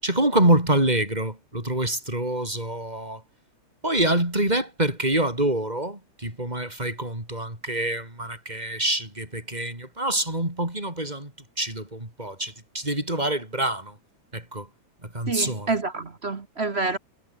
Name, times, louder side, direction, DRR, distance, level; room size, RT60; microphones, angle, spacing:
voice 1, 0.0-3.2 3.8-11.3 11.6-13.9 14.3-14.7 15.1-15.7, right 1 dB, 15° right, 6.6 m, -26 dB
voice 2, 15.3-17.0, right 3 dB, 40° right, 0.9 m, -28 dB
omnidirectional pair, 3.4 m